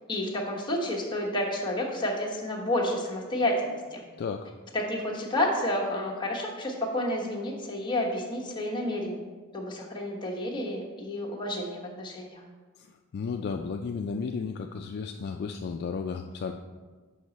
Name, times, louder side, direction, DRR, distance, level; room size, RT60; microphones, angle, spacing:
voice 1, 0.1-4.1 4.7-9.3 9.5-12.4, left 1 dB, 20° left, -2 dB, 1.1 m, -30 dB
voice 2, 4.2-4.5 13.1-16.5, left 5 dB, 50° left, 4 dB, 0.3 m, -33 dB
6.4 x 5.7 x 4.1 m, 1.4 s
head